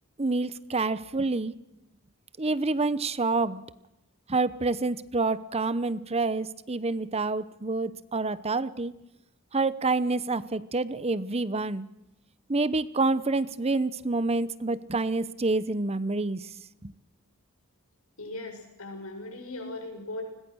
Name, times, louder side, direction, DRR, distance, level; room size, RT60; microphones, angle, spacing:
voice 1, 0.2-1.5 2.4-3.6 4.3-8.9 9.5-11.9 12.5-16.4 16.8-16.9, right 3 dB, 30° right, 16 dB, 0.9 m, -27 dB
voice 2, 18.2-20.2, left 2 dB, 90° left, 4 dB, 7.2 m, -38 dB
30.0 x 21.0 x 6.4 m, 0.91 s
head